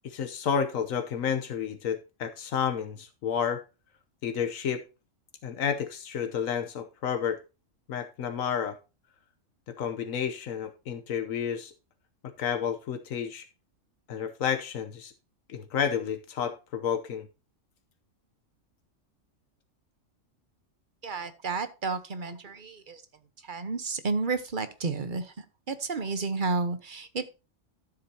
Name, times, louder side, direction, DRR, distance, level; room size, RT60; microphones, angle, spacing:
voice 1, 0.0-3.6 4.2-4.8 5.4-7.4 7.9-8.8 9.7-11.7 12.4-13.5 14.1-15.1 15.5-17.3, left 7 dB, 85° left, 1.3 m, -30 dB
voice 2, 21.0-23.0 23.4-27.4, right 4 dB, 40° right, 1.2 m, -32 dB
12.5 x 7.9 x 2.8 m
omnidirectional pair, 1.4 m